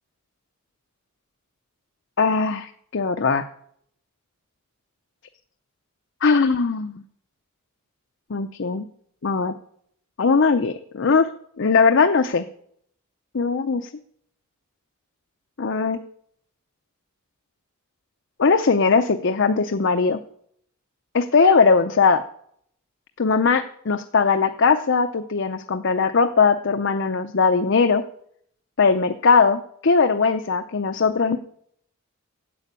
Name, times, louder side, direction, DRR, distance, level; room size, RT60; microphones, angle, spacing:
voice 1, 2.2-3.4 6.2-7.0 8.3-8.9 9.2-9.5 10.2-11.3 11.6-12.5 13.3-13.9 15.6-16.0 18.4-20.2 21.1-22.2 23.2-28.0 28.8-31.4, left 4 dB, 55° left, 7 dB, 0.6 m, -19 dB
11.0 x 8.3 x 8.2 m, 0.68 s
head